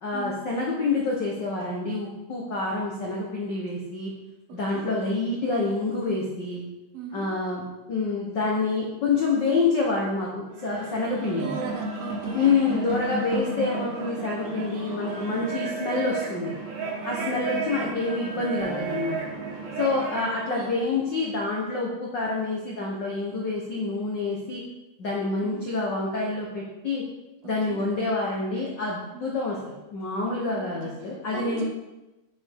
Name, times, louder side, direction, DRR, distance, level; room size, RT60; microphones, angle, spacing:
voice 1, 0.0-4.1 4.5-6.6 7.1-11.5 12.3-16.5 17.0-19.2 19.8-24.6 25.0-27.0 27.4-31.6, left 3 dB, 70° left, -3 dB, 1.0 m, -27 dB
voice 2, 4.5-4.9 6.9-7.3 11.3-12.5 20.1-20.2 20.5-20.8 25.4-25.6 27.4-27.8 29.1-29.2 30.6-30.9 31.3-31.6, right 5 dB, 70° right, 2 dB, 1.8 m, -38 dB
sound 1, 10.5-20.3, right 3 dB, 85° right, 2.8 m, -33 dB
sound 2, 18.6-21.0, equal, 40° left, 2.7 m, -43 dB
9.4 x 5.2 x 3.5 m, 1.0 s
omnidirectional pair, 3.4 m